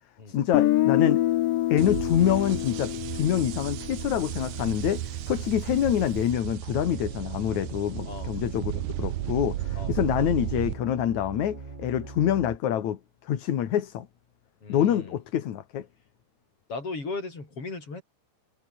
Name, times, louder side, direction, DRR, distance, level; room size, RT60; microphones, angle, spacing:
voice 1, 0.3-1.3 1.7-14.1 14.7-15.9, left 10 dB, 65° left, 3.0 m, -26 dB
Guitar, 0.5-4.5, left 14 dB, 80° left, 1.4 m, -26 dB
sound 1, 1.8-10.7, right 16 dB, 80° right, 2.4 m, -34 dB
sound 2, 6.8-12.6, right 3 dB, 25° right, 0.9 m, -42 dB
voice 2, 14.6-15.1 16.7-18.0, left 3 dB, 45° left, 7.4 m, -37 dB
omnidirectional pair, 3.7 m